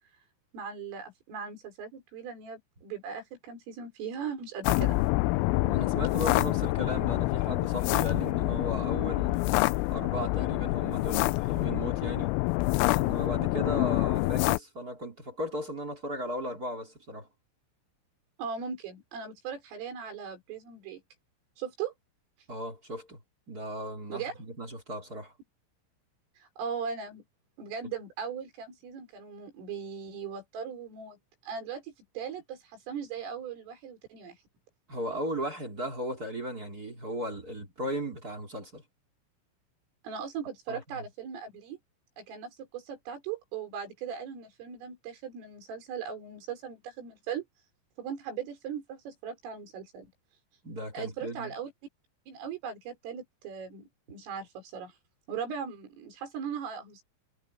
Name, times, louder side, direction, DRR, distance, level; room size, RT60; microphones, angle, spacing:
voice 1, 0.5-5.0 18.4-21.0 21.6-21.9 24.1-24.3 26.4-27.2 27.6-31.2 31.4-34.4 40.0-41.8 42.2-47.5 48.0-50.1 50.9-51.7 52.3-54.9 55.3-57.0, right 7 dB, 75° right, 7.8 m, -39 dB
sound 1, 4.7-14.6, left 21 dB, 85° left, 3.2 m, -27 dB
voice 2, 5.6-9.5 9.9-12.4 12.9-17.3 22.5-23.2 23.5-25.3 34.9-38.8 40.7-41.0 50.6-51.5, equal, 20° right, 3.0 m, -36 dB
omnidirectional pair, 5.9 m